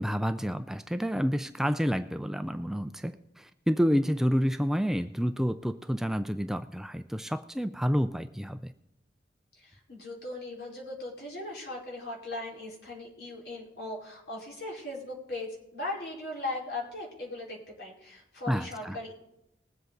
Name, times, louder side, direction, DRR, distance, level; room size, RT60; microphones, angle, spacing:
voice 1, 0.0-8.7 18.5-19.0, equal, 5° right, 10 dB, 0.4 m, -29 dB
voice 2, 9.5-19.1, left 2 dB, 70° left, -3 dB, 4.6 m, -38 dB
20.5 x 7.9 x 3.9 m, 0.83 s
head